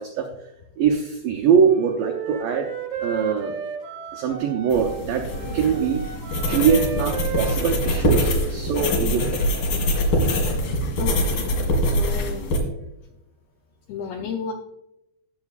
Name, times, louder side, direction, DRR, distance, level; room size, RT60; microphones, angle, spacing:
voice 1, 0.0-2.7 3.0-3.6 4.1-5.3 5.5-6.0 6.5-9.5, right 7 dB, 90° right, 3 dB, 1.9 m, -22 dB
Wind instrument woodwind instrument, 1.5-5.0 5.3-8.8, right 7 dB, 75° right, 1.7 m, -34 dB
sound 1, 4.7-12.6, equal, 60° left, 3.3 m, -24 dB
voice 2, 10.2-10.6 11.0-12.5 13.9-14.5, left 5 dB, 85° left, 3 dB, 2.1 m, -33 dB
18.0 x 7.2 x 2.4 m, 0.86 s
omnidirectional pair, 5.1 m